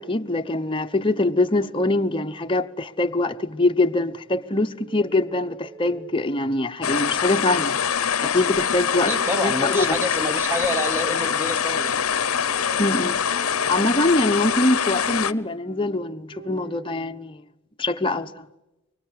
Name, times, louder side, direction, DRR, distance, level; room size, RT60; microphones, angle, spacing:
voice 1, 0.0-7.8 8.2-9.1 9.4-10.0 12.8-13.2 13.7-17.4 17.8-18.5, left 2 dB, 25° left, 0.9 m, -23 dB
sound 1, 4.8-6.6 7.9-8.7 8.9-9.9 10.2-11.4 12.4-14.2 15.3-17.0, right 4 dB, 50° right, 5.4 m, -46 dB
sound 2, 6.8-15.3, left 7 dB, 80° left, 0.9 m, -24 dB
voice 2, 9.1-12.1, left 1 dB, 10° right, 1.1 m, -28 dB
24.5 x 24.0 x 9.6 m
head